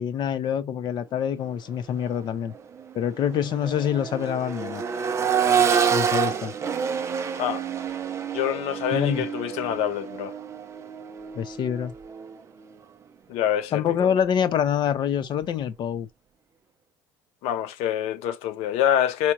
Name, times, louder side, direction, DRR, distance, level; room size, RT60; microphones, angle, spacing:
voice 1, 0.0-2.5 2.9-4.8 5.9-6.5 8.9-9.2 11.4-11.9 13.7-16.1, left 8 dB, 45° left, 0.6 m, -26 dB
Accelerating revving vroom, 1.9-2.1 2.5-12.4 14.1-14.2, right 7 dB, 25° right, 0.5 m, -28 dB
voice 2, 8.3-10.3 13.3-14.1 17.4-19.3, left 10 dB, 80° left, 0.7 m, -26 dB
4.3 x 2.3 x 2.9 m
cardioid pair, 140°, 10 cm